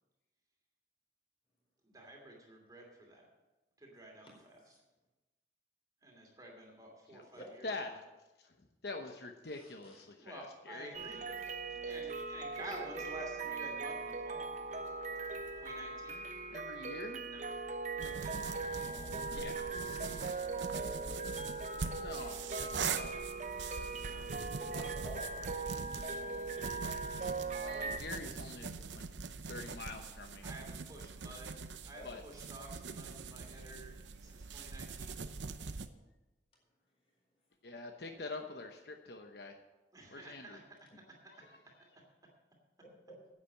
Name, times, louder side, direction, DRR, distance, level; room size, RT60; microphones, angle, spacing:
voice 1, 1.8-3.3 3.8-4.6 6.0-7.9 10.1-11.3 11.8-14.5 15.6-16.2 17.3-17.6 17.9-19.4 19.8-20.4 24.0-24.3 30.4-31.5 31.8-33.9 34.2-35.1 39.9-40.6, right 1 dB, 20° right, 0 dB, 2.7 m, -51 dB
voice 2, 8.4-10.9 16.5-17.3 19.3-19.8 22.0-23.1 27.6-29.0 29.5-30.4 32.0-32.2 37.6-39.6 40.1-40.6 41.3-41.6, left 3 dB, 60° left, 4 dB, 1.0 m, -45 dB
voice 3, 9.5-10.0 11.3-11.4 12.6-12.7 22.2-22.4 24.6-25.6 26.0-26.6 32.0-32.1 42.8-43.1, equal, 30° left, -1 dB, 4.5 m, -51 dB
sound 1, 10.9-28.0, right 3 dB, 40° right, 0.8 m, -40 dB
sound 2, 18.0-35.9, right 5 dB, 90° right, 0.8 m, -43 dB
10.5 x 8.6 x 7.4 m, 1.1 s
head